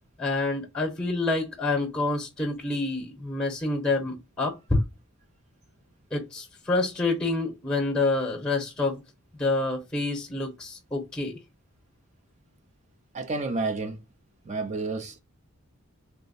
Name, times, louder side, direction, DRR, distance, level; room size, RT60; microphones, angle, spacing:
voice 1, 0.2-4.8 6.1-9.0 9.4-11.4, left 2 dB, 5° left, 0.8 m, -27 dB
voice 2, 13.1-14.0 14.4-15.2, right 3 dB, 30° right, 0.5 m, -30 dB
3.4 x 2.0 x 3.9 m
head